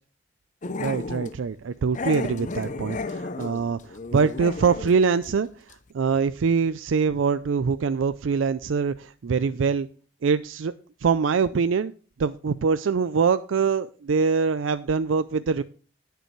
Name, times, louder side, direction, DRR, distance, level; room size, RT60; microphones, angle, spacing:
Growling, 0.6-1.4 1.9-5.0 5.2-5.4 5.7-5.8, left 3 dB, 40° left, 0.6 m, -33 dB
voice 1, 0.8-9.9 10.2-10.7 11.0-11.9 12.2-15.6, right 5 dB, 80° right, 13 dB, 0.4 m, -24 dB
18.5 x 6.8 x 3.1 m, 0.39 s
head